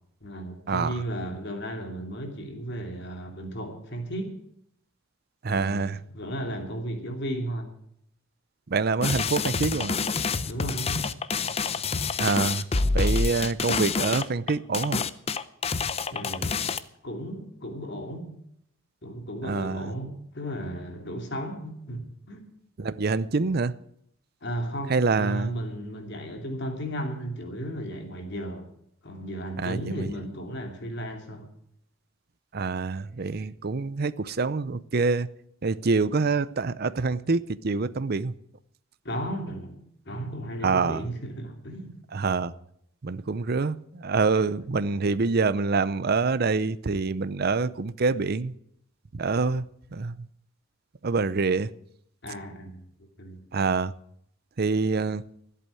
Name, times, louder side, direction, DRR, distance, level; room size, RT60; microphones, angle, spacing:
voice 1, 0.2-4.3 5.5-7.7 10.5-11.1 16.1-16.8 17.0-18.3 19.0-22.4 24.4-28.6 29.0-31.5 39.0-39.8 40.1-41.9 44.6-44.7 52.2-52.8 53.2-53.4, right 1 dB, 60° left, 2.8 m, -34 dB
voice 2, 5.4-6.0 8.7-9.9 12.2-12.6 12.9-15.0 19.4-19.9 22.8-23.7 24.9-25.5 29.6-30.1 32.5-35.3 35.6-38.3 40.6-41.0 42.1-42.5 43.0-48.5 49.1-49.6 49.9-50.2 51.0-51.7 53.5-53.9 54.6-55.2, right 4 dB, 50° right, 0.6 m, -26 dB
sound 1, 9.0-16.8, left 4 dB, 30° left, 0.6 m, -27 dB
14.5 x 8.5 x 9.1 m
head